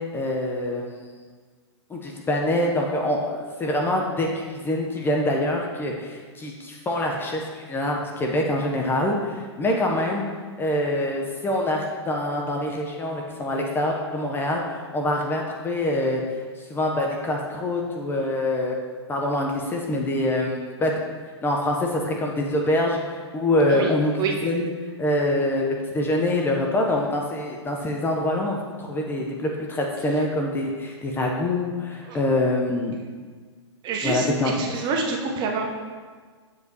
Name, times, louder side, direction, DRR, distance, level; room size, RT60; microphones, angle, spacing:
voice 1, 0.1-1.1 1.9-10.2 10.6-16.2 16.6-18.8 19.1-20.9 21.4-24.1 24.4-24.7 25.0-33.0 34.0-34.5, left 1 dB, 15° left, 0 dB, 0.5 m, -25 dB
voice 2, 9.6-10.1 23.7-24.4 32.0-32.2 33.8-35.7, right 4 dB, 30° right, 1 dB, 0.9 m, -28 dB
7.7 x 4.9 x 2.8 m, 1.5 s
hypercardioid pair, 110°, 15 cm